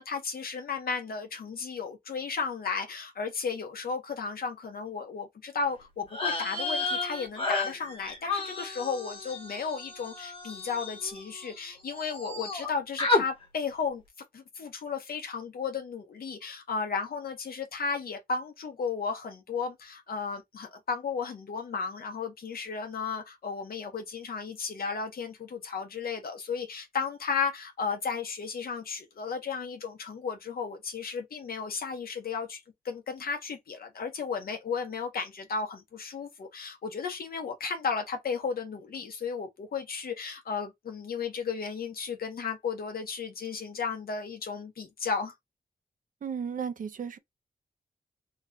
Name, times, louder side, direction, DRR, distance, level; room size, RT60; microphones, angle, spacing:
voice 1, 0.0-14.0 14.3-32.6 32.8-45.3, left 5 dB, 80° left, 1.0 m, -34 dB
sound 1, 6.1-11.7 12.0-12.7 13.0-13.2, left 3 dB, 35° left, 1.2 m, -32 dB
voice 2, 46.2-47.2, right 7 dB, 60° right, 0.5 m, -34 dB
3.1 x 2.3 x 3.8 m
wide cardioid pair, 115°, 15 cm